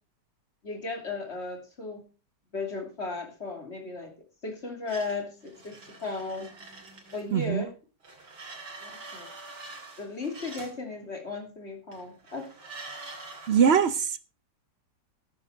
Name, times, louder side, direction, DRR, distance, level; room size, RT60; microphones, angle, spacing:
voice 1, 0.6-2.0 2.5-4.1 4.4-6.5 7.1-7.7 8.8-9.3 10.0-12.5, left 3 dB, 40° left, 3 dB, 3.1 m, -35 dB
sound 1, 4.9-7.5 8.0-10.8 11.9-13.7, right 3 dB, 90° right, 3.3 m, -45 dB
voice 2, 7.3-7.6 13.5-14.3, right 7 dB, 60° right, 14 dB, 0.7 m, -22 dB
12.5 x 9.6 x 4.5 m, 0.33 s
omnidirectional pair, 1.8 m